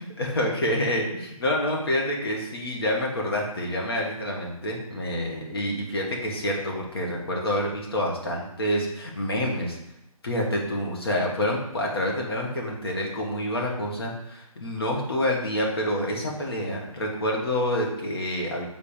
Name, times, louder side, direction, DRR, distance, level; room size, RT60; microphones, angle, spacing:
voice 1, 0.2-9.8 10.2-18.7, left 1 dB, 40° left, -1 dB, 1.7 m, -27 dB
7.4 x 4.0 x 5.1 m, 0.86 s
hypercardioid pair, 175°, 19 cm